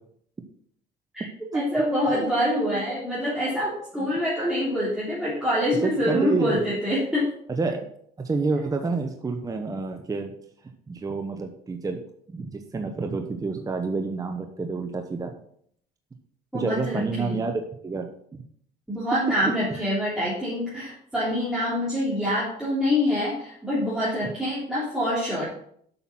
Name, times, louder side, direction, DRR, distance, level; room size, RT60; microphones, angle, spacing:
voice 1, 1.5-7.3 16.5-17.4 18.9-25.5, equal, 5° right, -9 dB, 3.3 m, -26 dB
voice 2, 5.8-6.7 7.5-7.9 8.2-10.3 10.9-12.0 12.3-15.3 16.5-18.1 19.7-19.8, right 4 dB, 20° right, 5 dB, 0.9 m, -28 dB
7.9 x 6.0 x 6.0 m, 0.66 s
cardioid pair, 110°, 17 cm